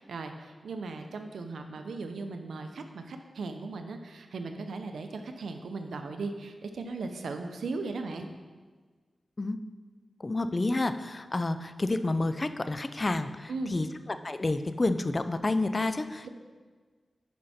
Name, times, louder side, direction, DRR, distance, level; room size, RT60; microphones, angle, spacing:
voice 1, 0.0-8.3 13.5-13.7 16.2-16.3, right 3 dB, 90° right, 6 dB, 0.7 m, -37 dB
voice 2, 10.2-13.9 14.2-16.3, left 2 dB, 40° left, 11 dB, 0.5 m, -29 dB
10.5 x 5.5 x 4.3 m, 1.4 s
cardioid pair, 55°, 0 cm